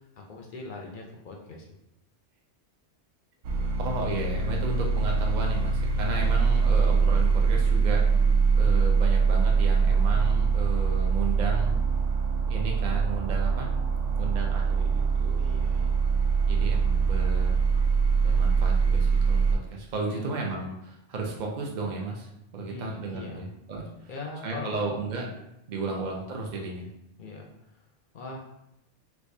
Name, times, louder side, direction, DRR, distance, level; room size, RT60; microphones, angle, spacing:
voice 1, 0.2-1.7 3.5-3.7 5.9-6.7 15.4-16.0 20.1-20.3 22.7-23.4 24.1-24.9 25.7-25.9 27.2-27.5 28.1-28.4, left 3 dB, 55° left, 0 dB, 0.6 m, -41 dB
sound 1, 3.4-19.6, right 5 dB, 85° right, 0.9 m, -23 dB
voice 2, 3.8-8.0 8.5-11.8 12.5-13.7 14.2-15.5 16.5-17.6 18.2-23.9 24.4-25.3 25.7-26.9, right 3 dB, 50° right, 0 dB, 0.6 m, -34 dB
4.6 x 2.1 x 2.6 m, 0.85 s
omnidirectional pair, 1.2 m